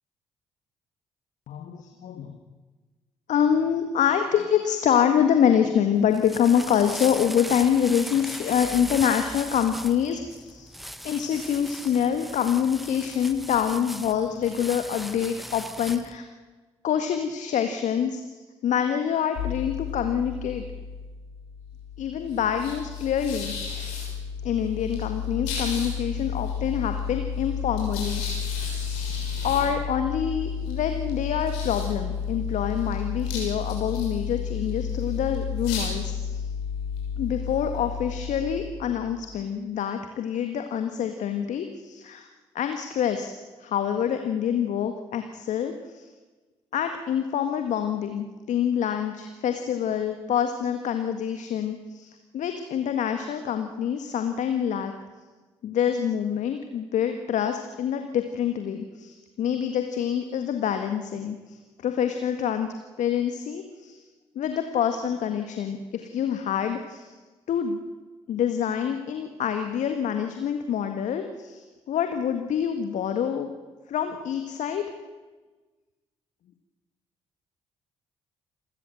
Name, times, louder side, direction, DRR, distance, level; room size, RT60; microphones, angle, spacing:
voice 1, 1.5-2.4 3.3-10.7 11.0-16.2 16.8-20.6 22.0-23.5 24.4-28.4 29.4-36.4 37.2-42.3 42.5-43.3 43.6-46.0 46.7-54.9 55.6-62.7 63.0-64.0 64.3-67.1 67.5-67.8 68.3-73.5 73.9-74.9, left 8 dB, 60° left, 6 dB, 1.7 m, -26 dB
sound 1, 6.0-16.2, equal, ahead, 1.3 m, -38 dB
sound 2, 19.4-39.3, left 7 dB, 75° left, 6.2 m, -32 dB
27.5 x 14.5 x 7.8 m, 1.3 s
figure-of-eight pair, 45°, 14 cm